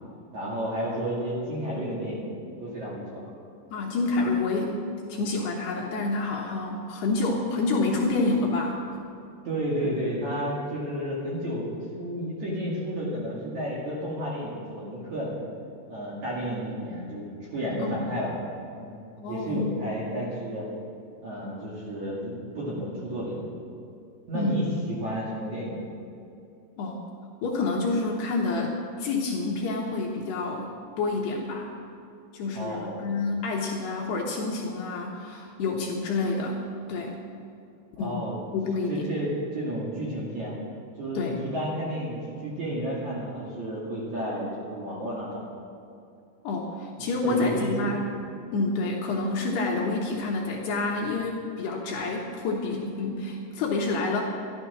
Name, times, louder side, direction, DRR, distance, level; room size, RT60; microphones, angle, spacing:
voice 1, 0.3-2.2 2.6-3.2 9.4-11.7 12.0-15.4 15.9-18.3 18.8-18.9 19.3-20.7 21.2-23.4 24.3-25.8 32.5-33.1 38.0-38.4 38.9-40.6 41.0-45.4 47.0-47.9, equal, 50° right, -5 dB, 2.7 m, -32 dB
voice 2, 3.7-4.8 5.1-9.0 17.8-18.0 19.2-19.8 24.3-24.5 26.8-27.1 27.4-30.7 31.0-31.7 32.3-36.6 36.9-37.1 38.0-38.2 38.5-39.1 41.1-41.4 46.4-48.1 48.5-54.2, left 3 dB, 70° left, -1 dB, 2.8 m, -28 dB
12.5 x 12.5 x 6.1 m, 2.6 s
omnidirectional pair, 5.6 m